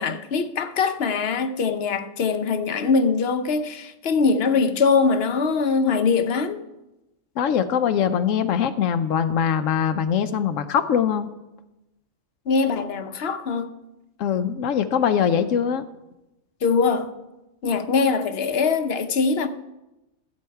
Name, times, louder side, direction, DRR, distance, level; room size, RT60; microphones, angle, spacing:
voice 1, 0.0-6.6 12.5-13.7 16.6-17.1 17.6-19.5, left 4 dB, 55° left, 1.0 m, -22 dB
voice 2, 7.4-11.3 14.2-15.8, left 8 dB, 85° left, 1.0 m, -22 dB
14.5 x 8.5 x 4.6 m
omnidirectional pair, 1.3 m